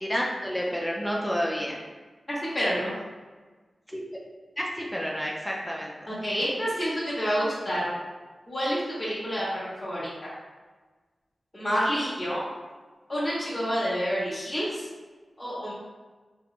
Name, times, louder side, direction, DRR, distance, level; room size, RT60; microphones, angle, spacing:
voice 1, 0.0-1.8 3.9-4.0 4.6-5.9, equal, 5° left, -3 dB, 0.5 m, -30 dB
voice 2, 2.3-2.9 6.1-7.9 8.5-10.3 11.5-12.4 13.1-14.9 15.4-15.7, equal, 20° left, -8 dB, 1.1 m, -28 dB
3.2 x 2.9 x 2.5 m, 1.3 s
cardioid pair, 60°, 0 cm